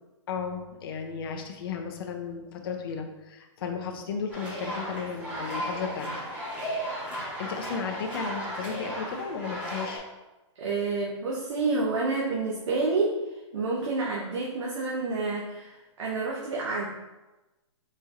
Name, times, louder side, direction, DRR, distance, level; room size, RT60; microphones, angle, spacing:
voice 1, 0.3-6.1 7.4-10.0, left 6 dB, 50° left, 4 dB, 0.6 m, -34 dB
sound 1, 4.3-10.0, equal, 10° right, 1.2 m, -35 dB
voice 2, 10.6-13.1 13.5-16.9, right 3 dB, 70° right, -4 dB, 0.9 m, -29 dB
4.3 x 4.2 x 2.5 m, 1.1 s
hypercardioid pair, 160°, 16 cm